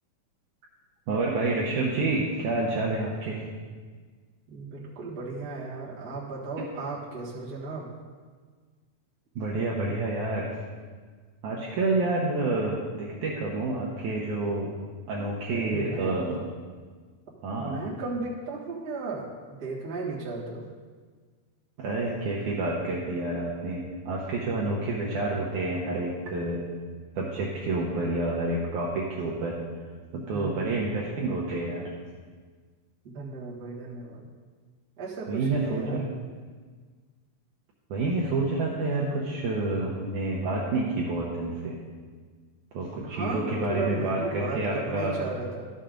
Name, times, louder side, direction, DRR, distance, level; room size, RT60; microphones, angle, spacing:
voice 1, 1.1-3.5 9.4-10.5 11.4-14.7 15.1-16.4 17.4-17.8 21.8-26.7 27.2-29.6 30.1-31.9 35.3-36.1 37.9-41.8 42.7-45.2, right 2 dB, 70° right, -4 dB, 2.0 m, -28 dB
voice 2, 4.5-7.9 15.5-16.1 17.6-20.7 30.3-30.8 33.0-34.3 35.0-36.1 43.0-45.6, right 3 dB, 40° right, -6 dB, 1.5 m, -35 dB
12.5 x 6.8 x 3.8 m, 1.5 s
omnidirectional pair, 4.3 m